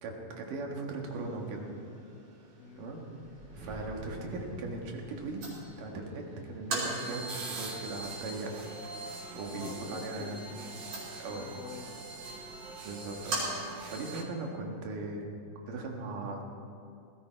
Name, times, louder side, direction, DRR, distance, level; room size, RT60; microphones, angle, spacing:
voice 1, 0.0-1.7 2.8-3.0 3.5-5.5 5.8-8.5 8.8-10.4 11.2-11.5 12.8-15.3 15.7-16.4, right 2 dB, 90° right, 1 dB, 3.4 m, -39 dB
sound 1, 1.0-14.1, right 2 dB, 70° right, 6.2 m, -43 dB
voice 2, 2.6-2.9 9.5-12.4, left 6 dB, 80° left, 7 dB, 2.5 m, -48 dB
sound 2, 3.1-7.9, right 1 dB, 40° right, 5.5 m, -49 dB
sound 3, 6.8-14.2, right 3 dB, 55° right, 1.2 m, -43 dB
19.0 x 16.0 x 4.6 m, 2.4 s
omnidirectional pair, 3.7 m